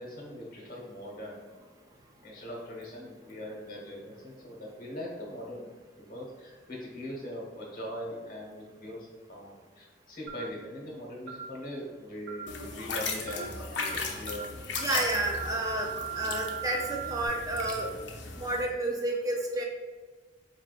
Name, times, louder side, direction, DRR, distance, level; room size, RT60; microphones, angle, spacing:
voice 1, 0.0-1.4 2.2-5.6 6.1-12.5 12.7-13.5 13.9-14.5 18.3-18.5, equal, 50° left, -2 dB, 1.1 m, -41 dB
sound 1, 10.3-10.5 11.3-11.5 12.3-12.5 13.3-13.5 13.8-14.0 14.3-14.5 14.8-17.3, right 8 dB, 85° right, 1.0 m, -39 dB
sound 2, 12.5-18.6, left 4 dB, 70° left, 0.6 m, -37 dB
voice 2, 14.8-15.9 16.2-17.9 18.4-19.6, right 1 dB, 20° right, 1 dB, 0.3 m, -30 dB
4.3 x 3.5 x 2.4 m, 1.4 s
head